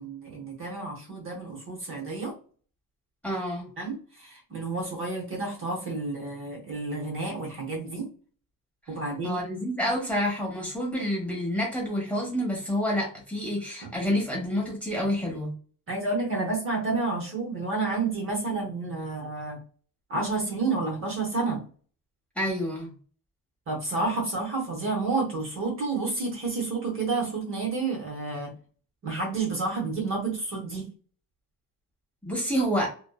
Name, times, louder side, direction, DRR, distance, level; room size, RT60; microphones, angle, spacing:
voice 1, 0.0-2.3 3.8-8.1 8.9-9.4 15.9-19.6 20.1-21.6 23.7-28.5 29.0-30.9, right 3 dB, 35° right, -1 dB, 0.8 m, -30 dB
voice 2, 3.2-3.7 9.2-15.5 22.4-22.9 32.2-32.9, equal, 5° left, -4 dB, 1.0 m, -28 dB
2.6 x 2.2 x 2.2 m, 0.40 s
cardioid pair, 160°, 35 cm